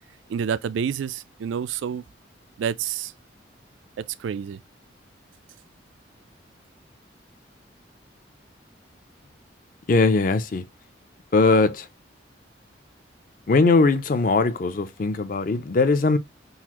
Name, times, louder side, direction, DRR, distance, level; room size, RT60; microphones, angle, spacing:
voice 1, 0.3-2.0 2.6-3.1 4.2-4.6, right 7 dB, 85° right, 0.3 m, -28 dB
voice 2, 9.9-10.6 11.3-11.9 13.5-16.2, left 3 dB, 45° left, 0.4 m, -20 dB
3.9 x 2.5 x 2.8 m
head